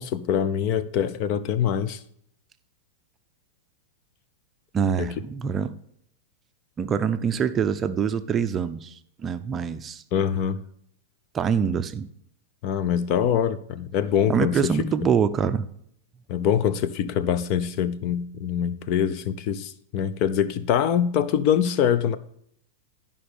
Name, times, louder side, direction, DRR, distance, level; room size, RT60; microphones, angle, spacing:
voice 1, 0.0-2.0 5.0-5.1 10.1-10.6 12.6-15.1 16.3-22.2, left 9 dB, 45° left, 0.6 m, -24 dB
voice 2, 4.7-5.7 6.8-10.0 11.3-12.1 14.3-15.7, right 7 dB, 25° right, 0.5 m, -25 dB
11.5 x 5.4 x 5.1 m
hypercardioid pair, 120°, 0 cm